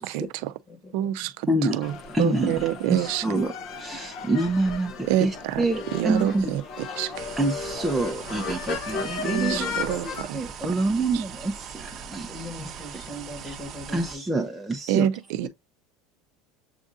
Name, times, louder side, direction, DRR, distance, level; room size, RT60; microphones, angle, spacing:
voice 1, 0.0-0.5 0.9-3.2 5.1-5.7 5.9-7.3 9.2-10.4 11.1-11.2 14.9-15.5, right 12 dB, 70° right, 0.5 m, -27 dB
voice 2, 0.7-1.3 12.3-14.2, left 1 dB, 25° left, 1.6 m, -40 dB
voice 3, 1.5-1.8 2.1-6.5 7.4-9.8 10.3-12.7 13.4-13.6 13.9-15.1, right 2 dB, 5° right, 0.6 m, -27 dB
sound 1, 1.8-10.2, left 5 dB, 45° left, 0.8 m, -35 dB
sound 2, 7.1-14.2, right 7 dB, 35° right, 1.0 m, -40 dB
7.2 x 2.5 x 2.6 m
supercardioid pair, 145°, 0 cm